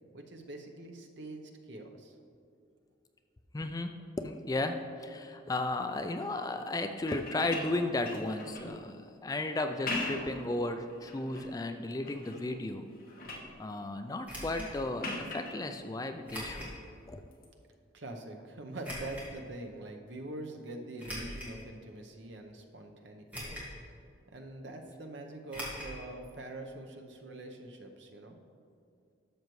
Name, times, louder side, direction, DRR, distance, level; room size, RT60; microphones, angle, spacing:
voice 1, 0.1-2.1 17.9-23.6 24.3-28.4, right 2 dB, 70° right, 4 dB, 0.8 m, -44 dB
voice 2, 3.5-3.9 4.2-12.8 13.6-16.7 17.1-17.2, left 2 dB, 20° left, 7 dB, 0.3 m, -34 dB
sound 1, 7.0-8.8 9.7-10.4 10.9-11.5 12.0-12.5 12.8-13.5 15.0-15.6 17.3-17.5, left 2 dB, 50° left, 1.2 m, -39 dB
sound 2, 14.2-14.7 16.3-16.8 17.3-17.4 18.8-19.3 21.0-21.6 22.2-22.3 23.3-23.8 24.1-24.2 25.5-26.0 26.2-26.3 26.6-26.7, equal, 10° right, 1.8 m, -41 dB
12.0 x 6.5 x 3.1 m, 2.4 s
head